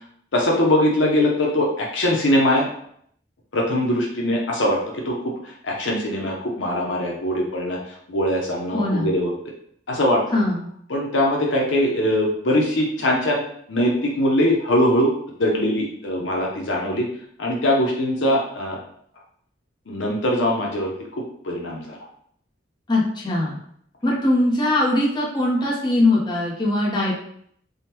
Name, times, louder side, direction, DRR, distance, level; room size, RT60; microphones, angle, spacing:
voice 1, 0.3-2.7 3.5-4.8 5.0-5.2 5.6-7.8 8.1-9.3 9.9-10.2 10.9-13.4 13.7-15.1 15.4-17.1 17.4-18.8 19.9-20.9 21.4-22.0, left 1 dB, 80° left, -1 dB, 0.7 m, -21 dB
voice 2, 8.7-9.1 10.3-10.7 22.9-23.6 24.0-27.1, left 1 dB, 25° left, -5 dB, 0.7 m, -21 dB
3.6 x 2.1 x 2.8 m, 0.66 s
head